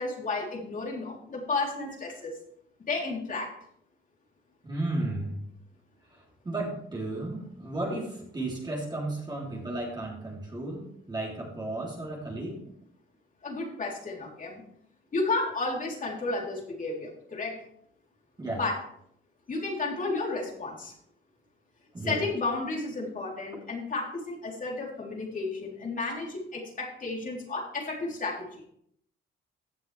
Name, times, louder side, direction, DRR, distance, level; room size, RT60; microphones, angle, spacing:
voice 1, 0.0-2.3 2.9-3.5 13.4-14.6 15.1-17.6 18.6-18.8 19.5-20.9 22.0-28.7, left 3 dB, 40° left, -1 dB, 3.6 m, -32 dB
voice 2, 4.6-5.4 6.1-12.6 18.4-18.6 21.9-22.2, right 2 dB, 20° right, -3 dB, 3.5 m, -34 dB
15.0 x 7.8 x 3.4 m, 0.69 s
cardioid pair, 90°, 20 cm